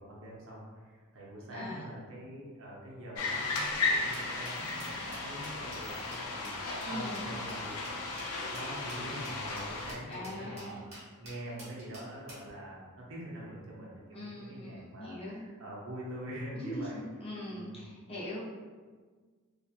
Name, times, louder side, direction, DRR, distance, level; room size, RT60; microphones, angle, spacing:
voice 1, 0.0-10.8 11.2-17.0 17.5-17.9, right 1 dB, 60° right, -5 dB, 0.7 m, -44 dB
voice 2, 1.5-1.8 6.8-7.2 10.1-10.8 14.1-15.4 16.5-18.4, left 1 dB, 25° left, -7 dB, 0.6 m, -41 dB
sound 1, 3.2-9.9, left 3 dB, 90° left, 0.4 m, -35 dB
sound 2, 4.1-12.5, right 1 dB, 30° right, 1.0 m, -50 dB
2.9 x 2.4 x 2.3 m, 1.5 s
head